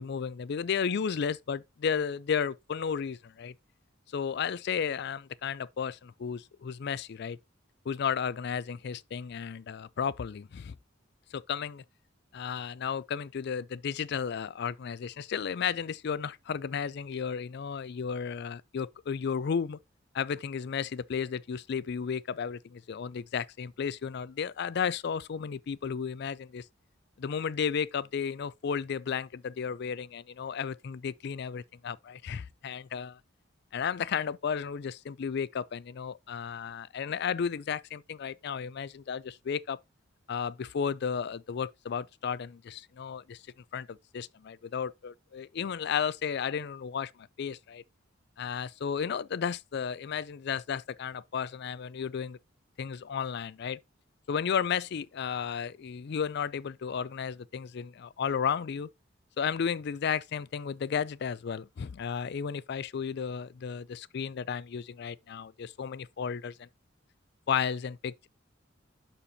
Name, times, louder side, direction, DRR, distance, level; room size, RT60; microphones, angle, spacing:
voice 1, 0.0-3.5 4.1-7.4 7.9-10.8 11.3-11.8 12.3-19.8 20.1-26.6 27.2-33.2 33.7-39.8 40.3-43.4 43.7-47.8 48.4-52.4 52.8-53.8 54.3-58.9 59.4-66.7 67.5-68.3, left 7 dB, 60° left, 0.4 m, -33 dB
12.0 x 4.3 x 2.7 m
head